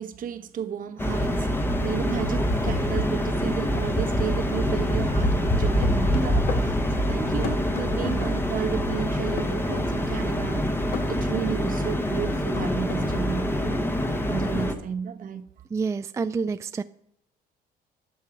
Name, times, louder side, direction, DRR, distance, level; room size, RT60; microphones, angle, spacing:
voice 1, 0.0-13.8 14.3-15.5, right 7 dB, 55° right, 1.1 m, -33 dB
sound 1, 1.0-14.7, equal, 15° left, 1.2 m, -25 dB
sound 2, 5.8-6.7 7.4-8.2 9.4-9.9 10.9-11.1 12.2-13.0, left 6 dB, 70° left, 1.8 m, -34 dB
voice 2, 15.7-16.8, right 5 dB, 15° right, 0.3 m, -28 dB
11.0 x 6.4 x 6.0 m
cardioid pair, 110°, 17 cm